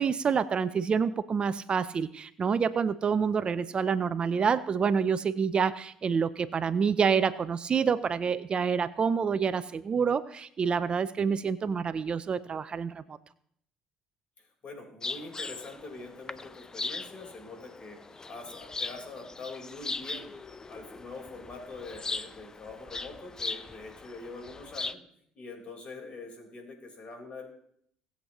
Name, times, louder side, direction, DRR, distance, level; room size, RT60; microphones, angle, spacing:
voice 1, 0.0-13.2, right 6 dB, 40° right, 14 dB, 0.6 m, -27 dB
voice 2, 14.4-18.0 18.3-20.3 20.7-25.0 25.3-27.5, left 3 dB, 50° left, 1 dB, 4.4 m, -44 dB
sound 1, 15.0-24.9, left 3 dB, 25° left, 0.6 m, -39 dB
19.0 x 8.1 x 3.1 m, 0.67 s
hypercardioid pair, 70°, 3 cm